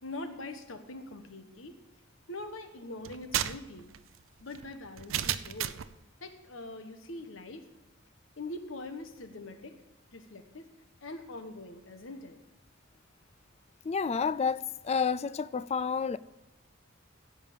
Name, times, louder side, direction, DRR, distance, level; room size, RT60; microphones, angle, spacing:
voice 1, 0.0-1.8 2.3-3.9 4.4-5.8 6.2-7.7 8.4-9.8 10.1-10.7 11.0-12.4, left 2 dB, 75° left, 1.2 m, -43 dB
sound 1, 3.0-6.0, right 11 dB, 75° right, 0.5 m, -34 dB
voice 2, 13.8-16.2, left 6 dB, 30° left, 0.3 m, -30 dB
16.0 x 5.4 x 7.3 m
head